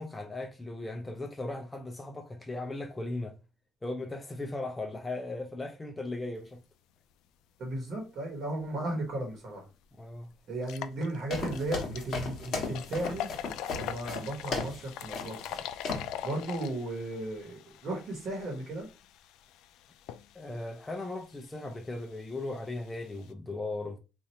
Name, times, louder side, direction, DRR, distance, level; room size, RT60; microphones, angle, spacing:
voice 1, 0.0-3.4 3.8-6.6 10.0-10.3 20.3-24.0, left 2 dB, 10° left, 0.4 m, -37 dB
voice 2, 7.6-9.6 10.5-13.3 13.8-15.6 16.2-18.9, right 1 dB, 45° right, 1.2 m, -35 dB
sound 1, 9.3-9.4 9.8-9.9 10.5-23.3, left 10 dB, 85° left, 0.3 m, -43 dB
sound 2, 11.3-14.8 15.1-15.6 15.8-16.1, left 3 dB, 45° left, 1.2 m, -36 dB
2.8 x 2.5 x 4.3 m
cardioid pair, 160°, 0 cm